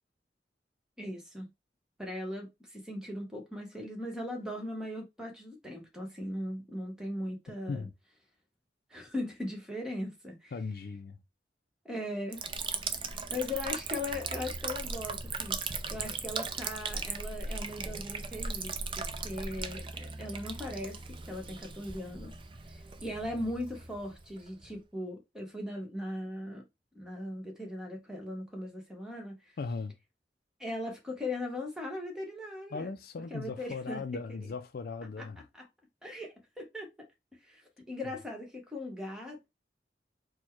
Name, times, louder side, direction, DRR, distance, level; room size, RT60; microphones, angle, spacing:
voice 1, 1.0-1.5 2.0-7.9 8.9-10.5 11.8-12.4 13.3-21.0 21.3-22.3 22.7-26.6 26.9-29.4 30.6-33.0 33.3-34.0 34.3-34.4 35.2-35.3 36.0-36.9 37.5-37.6 37.9-39.5, left 1 dB, 5° right, 1.2 m, -39 dB
voice 2, 10.5-11.2 29.6-29.9 32.7-35.4, left 4 dB, 55° left, 0.4 m, -38 dB
Liquid, 12.3-24.8, right 4 dB, 30° right, 0.5 m, -38 dB
4.4 x 2.2 x 4.4 m
head